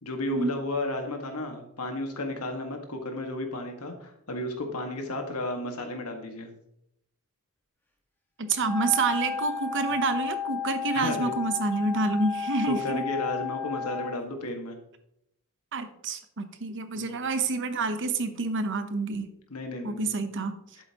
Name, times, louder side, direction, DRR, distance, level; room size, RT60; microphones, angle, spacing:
voice 1, 0.0-6.5 10.9-11.3 12.6-14.8 16.9-17.1 19.5-20.1, left 1 dB, 85° left, 4 dB, 1.7 m, -33 dB
voice 2, 8.4-13.1 15.7-19.3 19.8-20.6, right 3 dB, 55° right, 10 dB, 0.9 m, -28 dB
Wind instrument woodwind instrument, 8.6-14.2, left 6 dB, 10° left, 1.4 m, -33 dB
11.5 x 7.9 x 3.0 m, 0.76 s
head